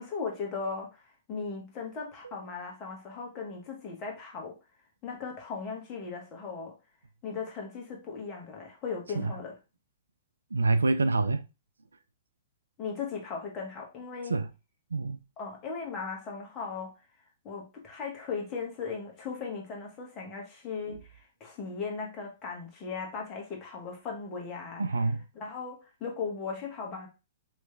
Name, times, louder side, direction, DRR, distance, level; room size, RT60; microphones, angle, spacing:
voice 1, 0.0-4.5 5.0-6.7 7.2-9.5 12.8-14.4 15.4-16.9 17.4-24.8 25.3-27.1, left 5 dB, 30° left, 1.4 m, -37 dB
voice 2, 10.5-11.4 14.3-14.5 14.9-15.2 20.9-21.0 24.8-25.2, right 3 dB, 85° right, 0.3 m, -26 dB
3.2 x 3.1 x 3.2 m
hypercardioid pair, 115°, 0 cm